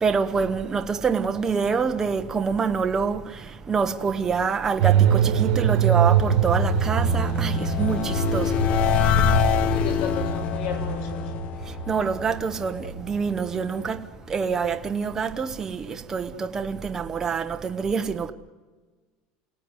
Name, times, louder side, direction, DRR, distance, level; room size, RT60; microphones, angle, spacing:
voice 1, 0.0-8.6 11.9-18.3, right 5 dB, 15° right, 1.0 m, -26 dB
sound 1, 4.8-14.7 15.0-15.1, right 7 dB, 70° right, 2.3 m, -24 dB
sound 2, 5.7-12.8, left 9 dB, 35° left, 0.8 m, -26 dB
voice 2, 9.7-11.3, left 7 dB, 65° left, 6.9 m, -34 dB
29.5 x 17.0 x 9.6 m
cardioid pair, 170°, 4 cm